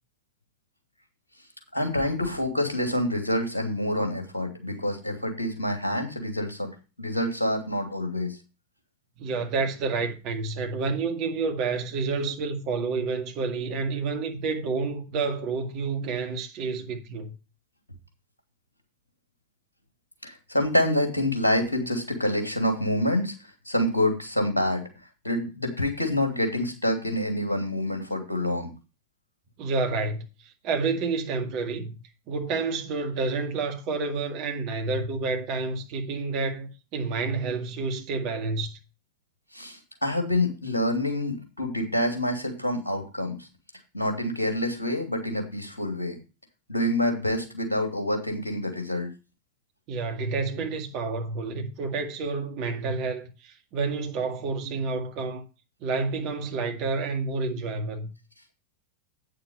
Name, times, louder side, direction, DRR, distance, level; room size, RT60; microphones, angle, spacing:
voice 1, 1.7-6.7 7.0-8.4 20.2-24.8 25.2-28.7 39.5-43.5 43.9-46.2 46.7-49.1, left 1 dB, 80° left, 2.7 m, -27 dB
voice 2, 9.2-17.3 29.6-31.9 32.3-38.8 49.9-55.4 55.8-58.1, right 4 dB, 40° right, 1.9 m, -29 dB
8.8 x 6.8 x 5.2 m
figure-of-eight pair, 90°, 0 cm